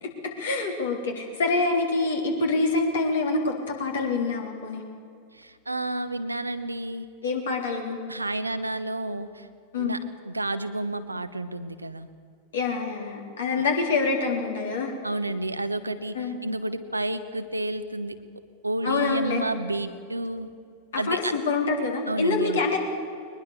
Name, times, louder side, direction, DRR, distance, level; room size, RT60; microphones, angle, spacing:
voice 1, 0.0-4.8 7.2-8.0 9.7-10.0 12.5-14.9 16.1-16.4 18.8-19.4 20.9-22.8, left 3 dB, 65° left, 3 dB, 3.8 m, -26 dB
voice 2, 5.3-7.1 8.1-9.5 9.8-10.0 10.2-12.1 13.5-13.7 15.0-18.2 18.6-20.5 21.0-21.3 22.1-22.6, right 1 dB, 85° right, 10 dB, 1.1 m, -30 dB
22.0 x 20.5 x 6.8 m, 2.3 s
figure-of-eight pair, 90°, 0 cm